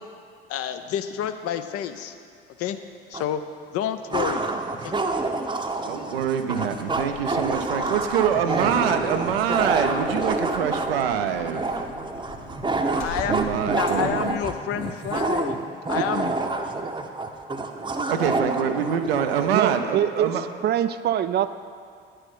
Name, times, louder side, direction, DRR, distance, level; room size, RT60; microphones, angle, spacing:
voice 1, 0.5-2.1 2.6-2.8 3.1-3.4 3.7-4.4 4.8-4.9 13.0-13.3 13.7-15.6 15.9-16.4, left 10 dB, 55° left, 9 dB, 0.6 m, -29 dB
sound 1, 3.1-3.2 4.1-19.5, right 3 dB, 15° right, 0.8 m, -27 dB
voice 2, 5.8-11.6 13.3-14.3 18.1-20.4, right 8 dB, 80° right, 7 dB, 0.6 m, -25 dB
sound 2, 6.8-15.2, left 2 dB, 80° left, 1.6 m, -43 dB
voice 3, 19.5-20.4 20.6-21.5, right 10 dB, 35° right, 13 dB, 0.4 m, -23 dB
10.0 x 6.7 x 5.5 m, 2.2 s
figure-of-eight pair, 55°, 29 cm